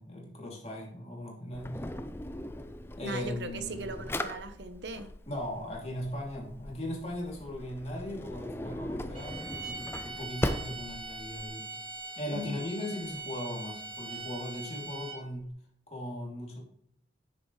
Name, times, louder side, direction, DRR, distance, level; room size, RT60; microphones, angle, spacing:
voice 1, 0.0-1.8 3.0-4.0 5.3-9.8 10.0-11.7 12.2-15.5 15.9-16.6, left 1 dB, 35° left, -2 dB, 2.9 m, -38 dB
Drawer open or close, 1.5-11.5, left 1 dB, 15° left, 0.5 m, -39 dB
voice 2, 3.0-5.1 12.3-12.6, right 2 dB, 75° right, 9 dB, 1.0 m, -38 dB
sound 1, 9.1-15.4, right 3 dB, 30° right, 2.0 m, -42 dB
9.4 x 7.1 x 3.2 m, 0.68 s
head